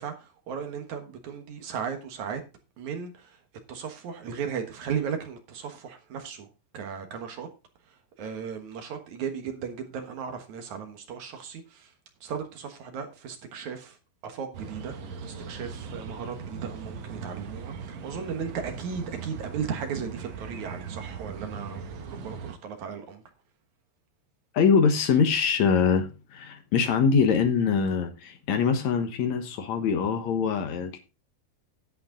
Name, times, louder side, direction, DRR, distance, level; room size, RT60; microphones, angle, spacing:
voice 1, 0.0-2.4 2.8-3.4 3.7-6.5 6.7-7.5 8.2-11.9 12.2-14.0 14.2-14.9 15.2-21.8 22.1-23.2, right 7 dB, 65° right, 1.9 m, -36 dB
sound 1, 14.5-22.5, right 5 dB, 80° right, 1.5 m, -39 dB
voice 2, 24.5-31.0, left 6 dB, 80° left, 1.6 m, -23 dB
11.5 x 8.8 x 3.8 m
omnidirectional pair, 5.3 m